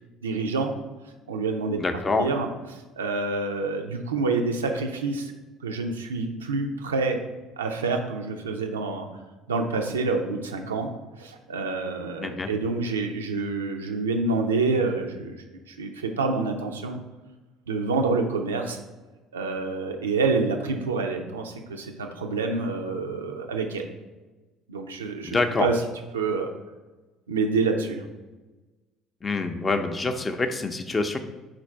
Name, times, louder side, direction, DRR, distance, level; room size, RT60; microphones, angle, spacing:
voice 1, 0.2-0.7 1.3-2.5 2.7-5.3 5.6-7.2 7.6-9.1 9.5-10.9 11.2-17.0 17.7-18.8 19.3-23.9 24.7-25.8 26.1-26.5 27.3-28.0, right 3 dB, 90° right, 3 dB, 0.4 m, -27 dB
voice 2, 1.8-2.3 12.2-12.5 25.2-25.7 29.2-31.2, left 3 dB, 30° left, 6 dB, 0.5 m, -26 dB
4.3 x 2.5 x 4.2 m, 1.2 s
hypercardioid pair, 60°, 0 cm